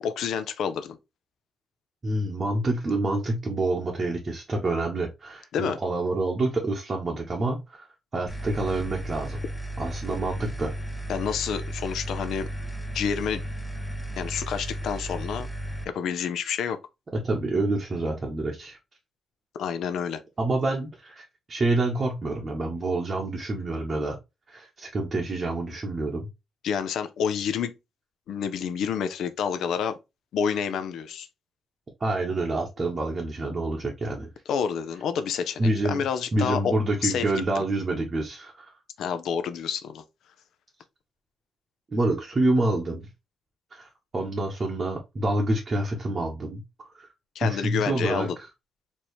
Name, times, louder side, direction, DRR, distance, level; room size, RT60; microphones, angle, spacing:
voice 1, 0.0-1.0 5.5-5.8 11.1-12.5 12.9-13.4 14.2-15.5 15.9-16.8 19.6-20.2 26.6-27.7 28.3-30.0 30.3-31.3 34.5-36.7 37.0-37.2 37.6-37.7 39.0-40.0 47.3-48.4, left 7 dB, 85° left, 0.6 m, -28 dB
voice 2, 2.0-7.9 8.1-9.4 9.8-10.7 17.1-18.8 20.4-24.2 24.5-26.3 32.0-34.3 35.6-36.0 36.3-38.7 41.9-43.1 43.7-46.6 46.9-47.1 47.4-48.5, right 2 dB, 25° right, 0.8 m, -27 dB
sound 1, 8.3-15.8, right 1 dB, 5° left, 0.5 m, -34 dB
4.5 x 2.8 x 3.1 m
wide cardioid pair, 165°, 0 cm